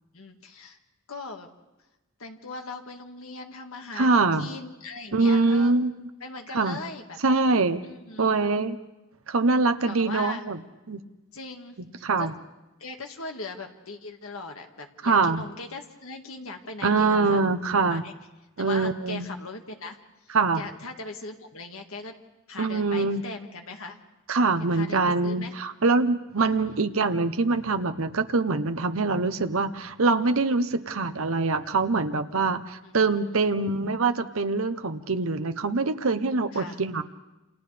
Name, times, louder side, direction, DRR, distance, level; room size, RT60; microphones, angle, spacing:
voice 1, 0.1-0.8 1.1-1.5 2.2-5.8 6.2-7.2 7.8-8.4 9.8-10.5 11.3-11.8 12.2-12.3 12.8-17.4 17.9-18.1 18.6-22.1 22.5-24.0 24.7-25.5 26.6-26.8 32.8-33.4 36.5-36.8, left 3 dB, 70° left, 4 dB, 1.9 m, -39 dB
voice 2, 4.0-4.5 5.1-5.9 6.5-6.8 7.2-7.8 8.2-8.8 9.3-10.6 10.9-11.0 12.0-12.3 15.0-15.4 16.8-18.0 18.6-19.3 20.3-20.6 22.6-23.2 24.3-37.0, right 3 dB, 70° right, 9 dB, 0.9 m, -24 dB
28.5 x 28.0 x 3.4 m, 1.1 s
head